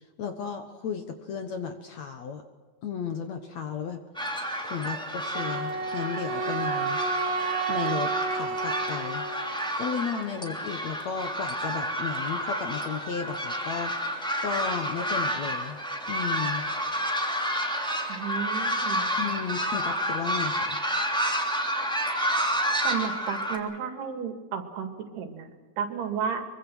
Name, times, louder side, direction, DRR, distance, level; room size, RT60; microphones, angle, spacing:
voice 1, 0.2-2.4 2.8-4.0 4.6-7.0 7.7-9.3 9.8-13.9 14.4-15.8 16.1-16.6 19.2-20.8, left 6 dB, 60° left, 7 dB, 2.0 m, -34 dB
sound 1, 4.1-23.6, equal, ahead, 2.4 m, -30 dB
Wind instrument woodwind instrument, 5.3-9.6, right 5 dB, 65° right, 3.5 m, -31 dB
voice 2, 18.1-19.1 22.8-26.5, right 7 dB, 85° right, 7 dB, 4.2 m, -33 dB
24.0 x 24.0 x 6.2 m, 1.4 s
omnidirectional pair, 4.6 m